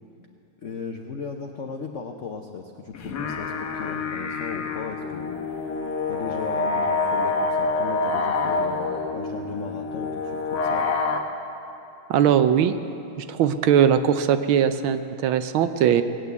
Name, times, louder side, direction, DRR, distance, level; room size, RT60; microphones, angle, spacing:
voice 1, 0.6-5.4 6.1-10.9, left 5 dB, 70° left, 3 dB, 0.7 m, -36 dB
sound 1, 2.9-11.2, left 3 dB, 55° left, 1.5 m, -27 dB
voice 2, 12.1-12.7 13.2-16.0, right 9 dB, 75° right, 10 dB, 1.4 m, -20 dB
18.5 x 9.1 x 8.1 m, 2.8 s
omnidirectional pair, 2.4 m